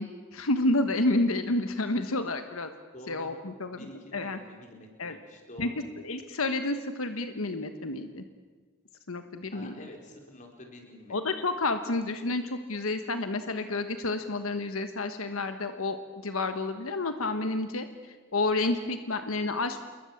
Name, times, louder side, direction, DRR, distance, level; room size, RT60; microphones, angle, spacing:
voice 1, 0.0-2.7 3.1-3.8 4.1-4.4 5.0-5.2 5.6-5.7 6.0-8.2 9.1-9.8 11.1-16.0 16.2-19.8, left 2 dB, 90° left, 8 dB, 1.4 m, -30 dB
voice 2, 2.9-3.3 3.7-5.8 9.5-11.2, left 1 dB, 35° left, 1 dB, 4.5 m, -48 dB
28.0 x 22.0 x 7.3 m, 1.4 s
head